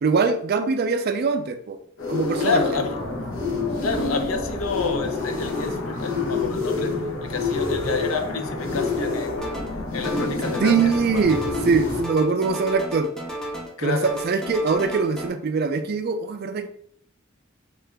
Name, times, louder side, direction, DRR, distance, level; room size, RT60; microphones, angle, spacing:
voice 1, 0.0-1.8 2.1-2.6 10.6-13.1 13.8-16.7, right 5 dB, 50° right, 8 dB, 0.4 m, -22 dB
sound 1, 2.0-12.0, left 3 dB, 70° left, 0.9 m, -27 dB
voice 2, 2.4-3.0 3.8-9.5 9.9-11.2 13.8-14.1, left 4 dB, 90° left, 6 dB, 0.5 m, -29 dB
sound 2, 9.4-9.8 10.0-11.8 12.0-13.8 14.0-15.3, right 1 dB, 5° left, 0.5 m, -34 dB
3.7 x 2.4 x 3.3 m, 0.63 s
head